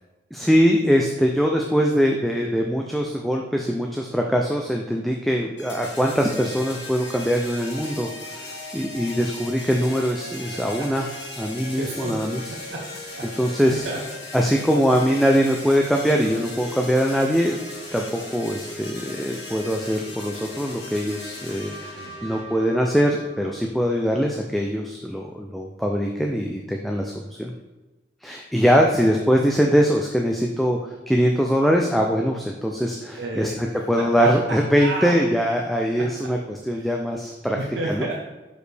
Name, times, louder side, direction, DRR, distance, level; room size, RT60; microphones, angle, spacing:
voice 1, 0.3-11.1 11.4-12.4 13.4-13.8 14.3-17.5 17.9-27.5 28.2-33.5 33.9-37.6 37.9-38.1, equal, ahead, 0 dB, 0.3 m, -22 dB
sound 1, 5.6-23.5, left 2 dB, 70° left, 2.1 m, -37 dB
voice 2, 11.6-12.9 13.2-14.0 22.0-22.1 33.1-35.1 36.0-36.1 36.7-36.9 37.5-38.1, right 2 dB, 70° right, -2 dB, 0.8 m, -32 dB
6.3 x 5.0 x 3.3 m, 1.1 s
head